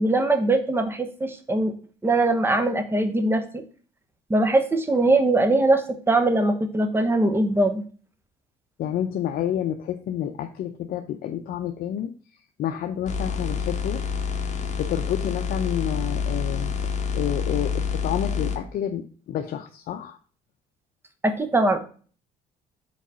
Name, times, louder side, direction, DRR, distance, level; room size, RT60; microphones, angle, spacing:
voice 1, 0.0-1.7 2.0-3.6 4.3-7.8 21.2-21.8, right 2 dB, 15° right, 8 dB, 1.0 m, -21 dB
voice 2, 8.8-12.1 12.6-14.0 14.8-20.2, left 10 dB, 60° left, 5 dB, 0.6 m, -29 dB
sound 1, 13.1-18.6, left 6 dB, 45° left, 1.1 m, -27 dB
5.0 x 4.0 x 5.6 m, 0.41 s
cardioid pair, 110°, 17 cm